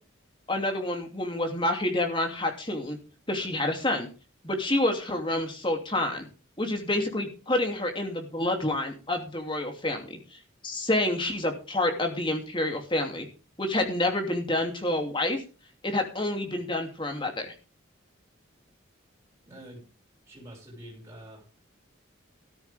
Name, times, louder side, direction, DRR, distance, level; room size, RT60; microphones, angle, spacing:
voice 1, 0.5-3.0 3.3-4.1 4.4-6.3 6.6-10.0 10.6-13.3 13.6-15.4 15.8-17.5, left 1 dB, 25° left, 3 dB, 2.7 m, -28 dB
voice 2, 19.5-19.8 20.3-21.6, right 1 dB, 15° right, -3 dB, 6.3 m, -46 dB
13.5 x 13.5 x 3.5 m, 0.35 s
head